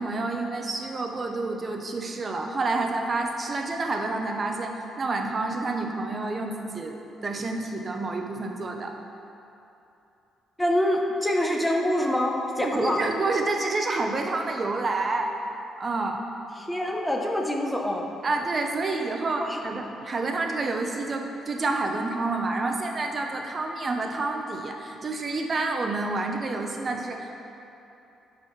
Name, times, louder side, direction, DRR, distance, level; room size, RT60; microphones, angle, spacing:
voice 1, 0.0-7.0 7.2-8.9 12.6-15.3 15.8-16.2 18.2-27.3, right 3 dB, 40° right, 3 dB, 0.7 m, -28 dB
voice 2, 10.6-13.0 16.6-18.1 19.4-19.6, left 1 dB, 5° left, 0 dB, 0.7 m, -25 dB
11.5 x 4.1 x 3.2 m, 2.8 s
cardioid pair, 90°, 0 cm